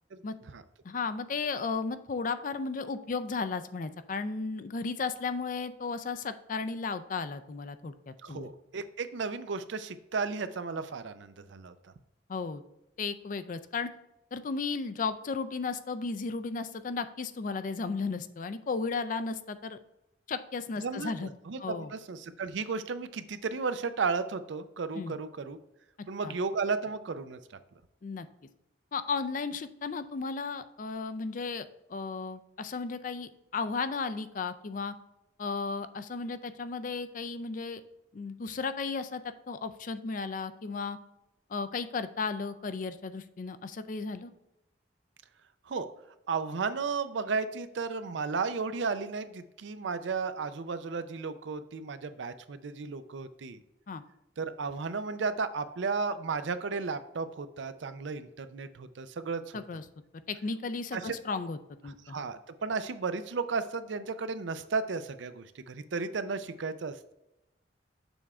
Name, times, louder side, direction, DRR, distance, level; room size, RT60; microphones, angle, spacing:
voice 1, 0.8-8.5 12.3-12.6 13.0-13.9 14.3-19.8 20.3-21.3 21.6-21.9 24.9-25.1 26.2-26.3 28.0-28.3 28.9-34.9 35.4-37.8 38.1-41.0 41.5-44.3 53.9-54.0 59.5-59.8 60.3-61.6 61.8-62.2, left 4 dB, 45° left, 11 dB, 0.4 m, -34 dB
voice 2, 8.2-11.9 20.8-25.6 26.1-27.4 45.7-45.9 46.3-53.6 54.4-59.4 60.9-61.2 62.1-67.1, right 4 dB, 80° right, 12 dB, 0.5 m, -34 dB
7.0 x 3.6 x 4.3 m, 0.91 s
head